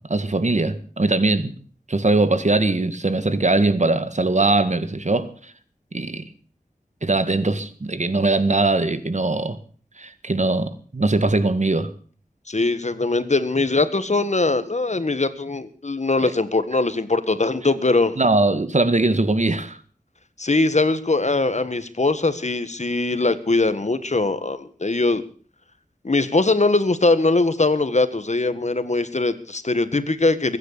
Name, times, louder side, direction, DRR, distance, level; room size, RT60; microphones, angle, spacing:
voice 1, 0.0-1.6 1.9-5.5 5.9-6.3 7.0-9.6 10.0-11.9 16.2-16.3 18.2-19.8, right 2 dB, 55° right, 1.8 m, -21 dB
voice 2, 12.5-18.1 20.4-25.2 26.0-30.6, left 3 dB, 55° left, 1.7 m, -21 dB
21.5 x 9.9 x 6.8 m
wide cardioid pair, 50°, 14 cm